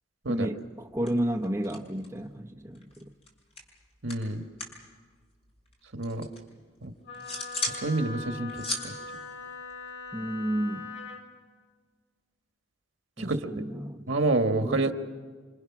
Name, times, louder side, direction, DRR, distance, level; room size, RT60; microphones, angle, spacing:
voice 1, 0.3-3.0 10.1-10.9 13.2-14.1 14.6-14.9, equal, 15° right, 3 dB, 0.9 m, -32 dB
sound 1, 0.6-2.3 2.6-4.8 5.1-6.4 6.8-7.8 8.2-10.3, left 2 dB, 30° left, 5.5 m, -38 dB
voice 2, 4.0-4.5 5.9-6.3 6.8-6.9 7.7-8.9 13.2-13.5 14.1-14.9, right 2 dB, 80° right, 6 dB, 1.6 m, -28 dB
Wind instrument woodwind instrument, 7.1-11.2, left 4 dB, 75° left, 6.0 m, -41 dB
28.0 x 25.5 x 6.0 m, 1.6 s
head